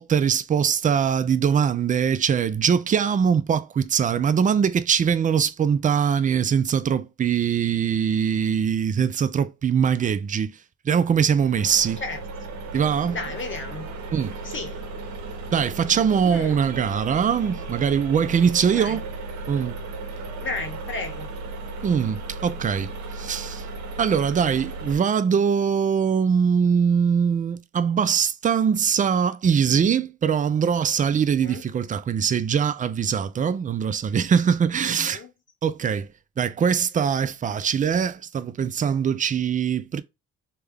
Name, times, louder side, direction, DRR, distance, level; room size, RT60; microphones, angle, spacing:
voice 1, 0.0-10.5 10.9-12.0 12.7-13.2 14.1-14.3 15.5-19.0 19.5-19.8 21.8-23.6 24.0-35.2 35.6-36.1 36.4-40.0, right 7 dB, 25° right, 0.4 m, -22 dB
sound 1, 11.2-25.0, right 3 dB, 70° right, 0.9 m, -35 dB
voice 2, 13.1-13.9 14.4-14.8 16.2-16.6 18.7-19.0 20.4-21.3 31.4-31.6 34.8-35.3, left 3 dB, 40° left, 0.9 m, -33 dB
3.3 x 2.2 x 3.5 m
cardioid pair, 90°, 30 cm